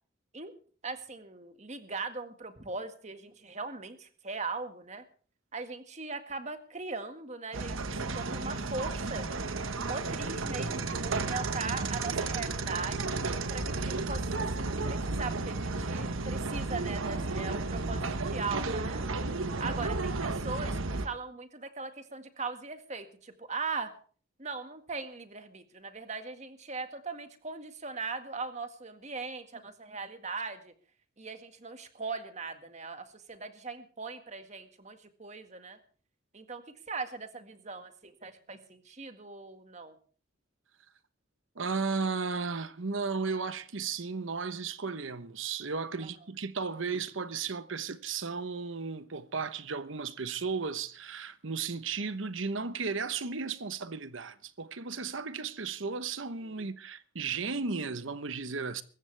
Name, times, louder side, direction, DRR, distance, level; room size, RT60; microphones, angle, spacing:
voice 1, 0.8-5.0 5.5-9.3 9.7-13.2 13.5-19.0 19.6-23.9 24.4-30.7 31.2-35.8 36.3-36.6 36.9-40.0 56.4-56.6, right 4 dB, 35° right, 1.8 m, -39 dB
sound 1, 7.5-21.1, right 3 dB, 85° right, 1.4 m, -33 dB
voice 2, 41.6-58.8, right 4 dB, 70° right, 1.0 m, -34 dB
23.5 x 14.5 x 3.4 m
head